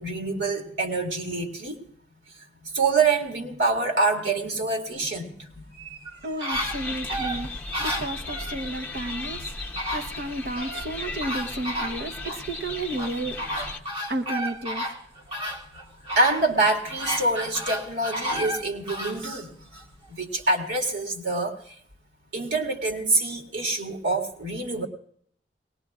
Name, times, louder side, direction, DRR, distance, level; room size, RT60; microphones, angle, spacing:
voice 1, 0.0-1.8 2.7-5.6 16.2-21.8 22.3-24.9, right 3 dB, 90° right, 2 dB, 2.1 m, -26 dB
sound 1, 5.7-8.6 9.4-9.5 9.8-10.9 11.2-12.4 13.0-19.2 19.7-19.8, equal, 30° right, 1.9 m, -32 dB
voice 2, 6.2-7.5 7.8-9.5 9.9-13.4 14.1-15.0, right 1 dB, 60° right, 4 dB, 0.8 m, -32 dB
sound 2, 6.5-13.8, left 3 dB, 10° left, 0.8 m, -36 dB
22.5 x 19.0 x 2.4 m, 0.64 s
head